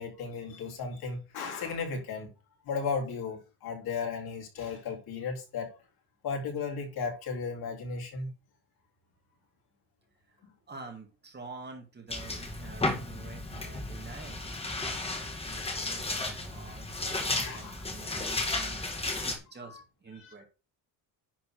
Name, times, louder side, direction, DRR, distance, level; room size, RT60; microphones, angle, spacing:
voice 1, 0.0-2.3 2.7-5.7 6.2-8.3 10.4-10.5 17.4-17.8 19.6-19.8 20.2-20.3, left 5 dB, 55° left, 3.5 m, -35 dB
voice 2, 10.3-18.8 19.2-20.4, right 4 dB, 25° right, 2.1 m, -48 dB
sound 1, 12.1-19.4, left 2 dB, 15° left, 1.9 m, -34 dB
10.5 x 4.1 x 6.4 m
cardioid pair, 155°, 43 cm